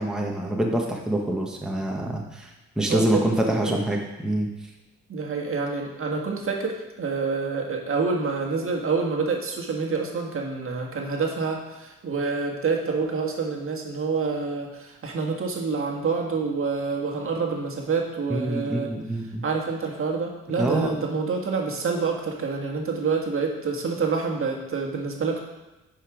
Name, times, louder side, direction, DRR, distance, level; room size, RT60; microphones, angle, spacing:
voice 1, 0.0-4.5 18.3-19.4 20.6-20.9, right 1 dB, ahead, -1 dB, 1.2 m, -26 dB
voice 2, 2.9-3.8 5.1-18.9 19.4-25.4, right 4 dB, 45° right, 0 dB, 1.6 m, -27 dB
9.2 x 5.2 x 5.0 m, 1.0 s
cardioid pair, 90°, 30 cm